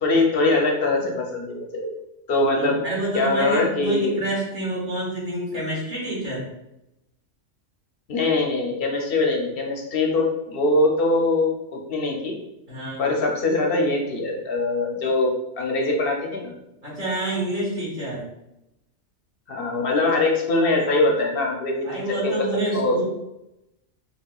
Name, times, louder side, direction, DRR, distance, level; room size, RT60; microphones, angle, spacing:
voice 1, 0.0-2.0 2.3-2.8 3.1-4.2 8.1-12.4 13.0-16.5 19.5-22.3 22.7-23.0, left 2 dB, 60° left, 1 dB, 0.7 m, -22 dB
voice 2, 2.6-6.4 12.7-13.1 16.8-18.2 21.8-23.0, right 1 dB, 40° right, -8 dB, 1.6 m, -28 dB
4.7 x 2.3 x 2.3 m, 0.89 s
omnidirectional pair, 1.3 m